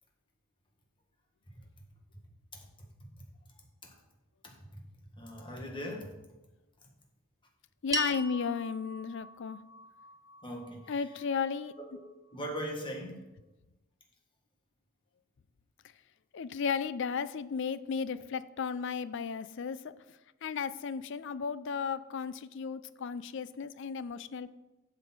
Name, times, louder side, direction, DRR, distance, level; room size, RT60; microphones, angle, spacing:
voice 1, 2.5-3.1 3.8-3.9 4.4-4.8 5.1-6.1 10.4-11.0 11.9-12.0 12.3-13.2, equal, 25° left, 0 dB, 1.8 m, -41 dB
voice 2, 7.8-9.6 10.9-11.7 16.3-19.9 20.4-24.6, left 6 dB, 60° left, 15 dB, 0.4 m, -34 dB
sound 1, 7.9-12.4, right 2 dB, 15° right, 0.7 m, -41 dB
7.8 x 6.9 x 6.1 m, 1.0 s
head